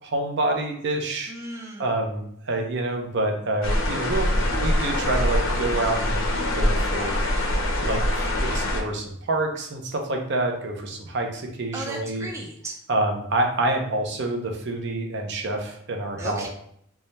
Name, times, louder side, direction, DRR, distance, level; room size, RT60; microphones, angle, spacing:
voice 1, 0.0-1.3 1.8-6.3 6.5-7.1 7.8-8.0 8.4-12.3 12.9-16.5, right 2 dB, 55° right, 3 dB, 0.6 m, -27 dB
voice 2, 1.3-1.8 7.4-7.5 11.7-12.8 16.2-16.5, right 1 dB, 15° right, -1 dB, 0.4 m, -35 dB
sound 1, 3.6-8.8, left 1 dB, 65° left, 0.7 m, -24 dB
3.5 x 2.1 x 4.1 m, 0.70 s
head